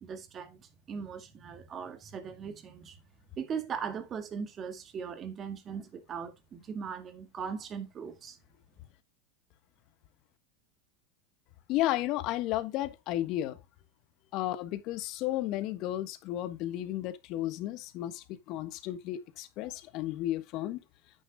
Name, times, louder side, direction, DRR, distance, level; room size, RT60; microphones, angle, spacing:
voice 1, 0.0-3.0 3.4-8.4, right 6 dB, 35° right, 2.0 m, -39 dB
voice 2, 11.7-13.6 14.3-20.8, left 14 dB, 50° left, 1.4 m, -33 dB
9.5 x 8.9 x 2.4 m
hypercardioid pair, 105°, 0 cm